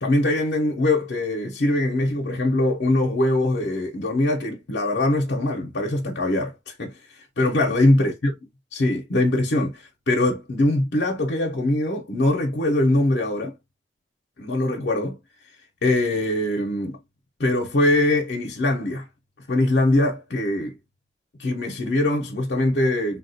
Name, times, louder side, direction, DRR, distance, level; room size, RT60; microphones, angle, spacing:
voice 1, 0.0-6.9 7.4-8.3 8.7-13.5 14.4-15.2 15.8-17.0 17.4-19.0 19.5-20.7 21.4-23.2, left 1 dB, 65° left, 0.6 m, -22 dB
3.5 x 2.3 x 2.6 m
head